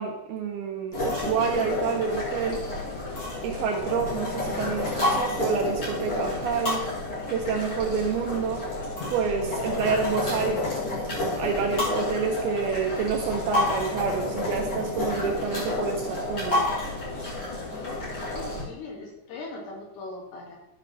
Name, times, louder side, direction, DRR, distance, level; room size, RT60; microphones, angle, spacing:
voice 1, 0.0-2.6 3.4-6.8 7.3-8.6 9.1-10.7 11.2-16.7, right 6 dB, 80° right, 2 dB, 2.3 m, -28 dB
sound 1, 0.9-18.6, left 2 dB, 30° left, 2.4 m, -30 dB
voice 2, 18.3-20.6, left 3 dB, 70° left, -2 dB, 3.8 m, -39 dB
13.0 x 6.0 x 3.1 m, 0.91 s
omnidirectional pair, 5.1 m